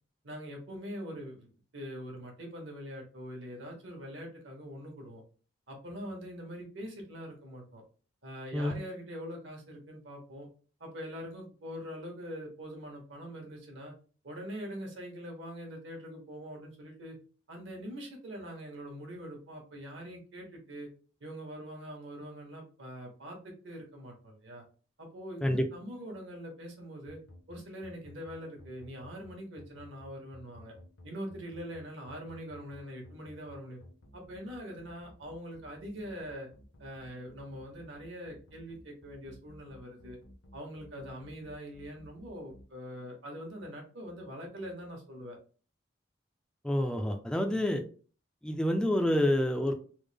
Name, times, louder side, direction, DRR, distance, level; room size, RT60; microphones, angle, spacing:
voice 1, 0.2-1.5 1.7-5.2 5.7-7.8 8.2-10.5 10.8-13.9 14.2-17.2 17.5-20.9 21.2-24.6 25.0-27.2 27.5-30.7 31.0-33.8 34.1-36.5 36.8-40.2 40.5-45.4 47.5-47.7, equal, 65° right, 1 dB, 1.1 m, -43 dB
sound 1, 27.1-42.6, left 1 dB, 65° left, 0.7 m, -54 dB
voice 2, 46.6-47.8 48.4-49.7, left 1 dB, 5° left, 4 dB, 0.3 m, -28 dB
3.4 x 2.0 x 3.3 m, 0.40 s
head